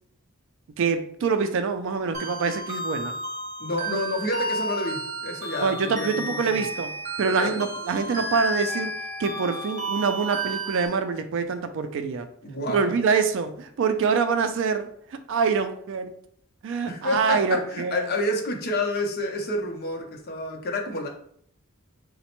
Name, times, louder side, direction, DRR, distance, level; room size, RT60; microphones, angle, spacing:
voice 1, 0.8-3.2 5.6-6.9 7.2-8.9 9.2-12.3 12.7-16.1 16.6-18.1, right 5 dB, 60° right, 9 dB, 0.3 m, -25 dB
sound 1, 2.1-10.9, right 1 dB, 35° right, 0.7 m, -32 dB
voice 2, 3.6-6.7 7.2-7.6 12.4-13.0 16.9-21.1, left 1 dB, 45° left, 2 dB, 0.6 m, -29 dB
4.0 x 2.1 x 2.9 m, 0.64 s
head